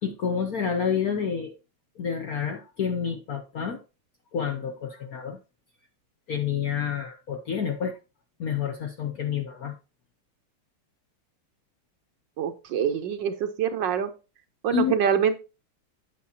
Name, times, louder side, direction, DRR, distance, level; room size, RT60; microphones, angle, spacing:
voice 1, 0.0-1.6 2.0-3.8 4.3-5.4 6.3-8.0 8.4-9.8 14.7-15.0, left 7 dB, 60° left, 1.0 m, -29 dB
voice 2, 12.4-14.1 14.6-15.4, right 8 dB, 70° right, 1.3 m, -25 dB
9.3 x 8.4 x 2.8 m
omnidirectional pair, 2.4 m